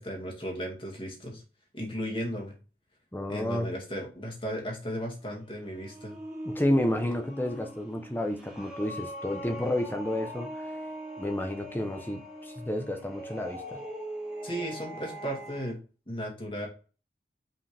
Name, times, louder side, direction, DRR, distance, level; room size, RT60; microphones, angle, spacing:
voice 1, 0.0-1.4 1.7-2.6 3.3-6.1 7.0-7.1 14.4-15.8 16.1-16.7, equal, 30° left, 2.1 m, -35 dB
voice 2, 3.1-3.7 6.4-10.8 11.2-13.8, left 1 dB, 10° left, 0.7 m, -30 dB
sound 1, 5.2-15.7, right 1 dB, 5° right, 1.7 m, -41 dB
5.5 x 5.2 x 3.4 m
head